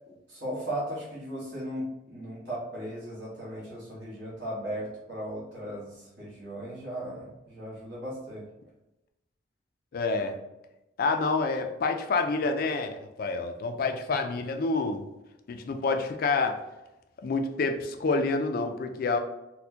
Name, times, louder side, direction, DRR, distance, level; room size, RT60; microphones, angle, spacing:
voice 1, 0.1-8.4, right 1 dB, 65° right, -8 dB, 1.3 m, -37 dB
voice 2, 9.9-10.4 11.0-15.1 15.5-16.6 17.2-19.2, left 3 dB, 50° left, 6 dB, 0.4 m, -28 dB
4.2 x 2.2 x 2.7 m, 0.95 s
head